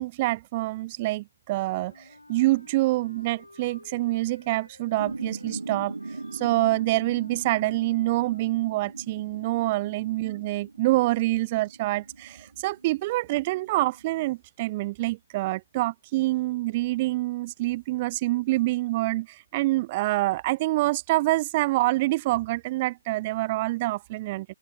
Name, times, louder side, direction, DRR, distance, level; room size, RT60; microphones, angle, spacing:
voice 1, 0.0-2.0 2.3-5.9 6.3-24.5, right 19 dB, 30° right, 0.3 m, -26 dB
Wind instrument woodwind instrument, 1.6-9.0, left 2 dB, 80° left, 2.4 m, -52 dB
sound 1, 5.0-14.2, right 3 dB, 70° right, 1.3 m, -40 dB
open air
figure-of-eight pair, 140°, 0 cm